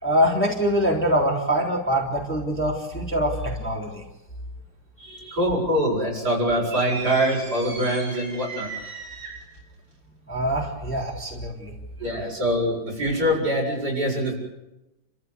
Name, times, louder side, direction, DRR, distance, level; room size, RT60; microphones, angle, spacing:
voice 1, 0.0-4.1 5.0-5.4 10.3-11.7, equal, 5° left, -2 dB, 3.6 m, -24 dB
voice 2, 5.3-8.7 12.0-14.3, equal, 50° right, -2 dB, 8.0 m, -24 dB
sound 1, 6.7-9.6, right 4 dB, 75° right, 6.3 m, -37 dB
30.0 x 14.5 x 8.3 m, 0.98 s
omnidirectional pair, 2.1 m